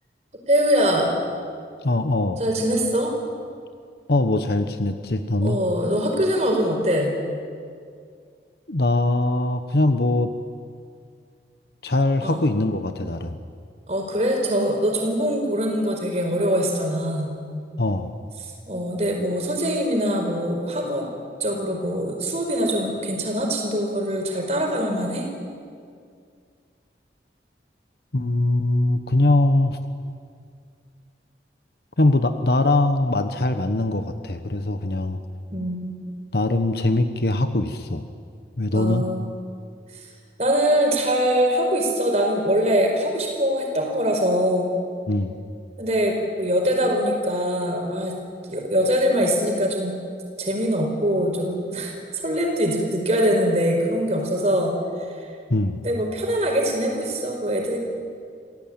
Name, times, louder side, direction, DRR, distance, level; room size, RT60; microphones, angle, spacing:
voice 1, 0.5-1.1 2.4-3.1 5.4-7.1 12.2-12.4 13.9-17.3 18.7-21.1 21.4-25.3 35.5-36.0 38.7-39.3 40.4-44.7 45.8-48.1 48.5-49.9 50.4-54.7 55.8-57.8, equal, 40° right, 2 dB, 4.9 m, -23 dB
voice 2, 1.8-2.4 4.1-5.6 8.7-10.3 11.8-13.4 17.8-18.1 28.1-29.8 32.0-35.2 36.3-38.0 38.6-39.0 45.1-45.4 55.5-55.8, left 2 dB, 65° left, 8 dB, 1.1 m, -22 dB
27.5 x 16.5 x 8.9 m, 2.2 s
head